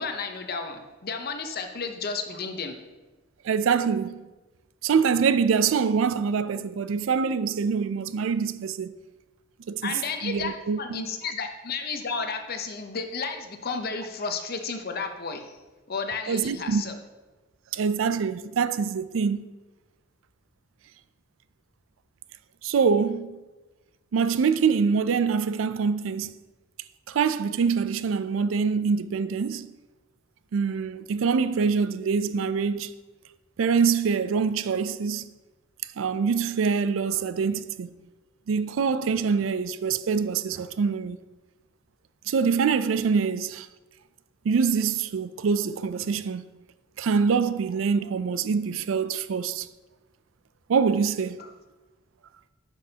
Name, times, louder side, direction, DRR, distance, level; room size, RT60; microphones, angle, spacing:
voice 1, 0.0-2.8 9.8-15.6 15.9-17.0 51.4-51.5, left 4 dB, 50° left, 0.8 m, -32 dB
voice 2, 3.4-4.2 4.8-8.9 9.7-11.0 16.3-16.8 17.7-19.5 22.6-23.4 24.1-26.4 27.1-29.7 30.5-32.9 33.6-35.2 36.0-37.9 38.5-41.2 42.3-43.7 44.4-46.4 47.0-49.7 50.7-51.4, right 6 dB, 90° right, 0.4 m, -25 dB
10.5 x 6.1 x 2.8 m
head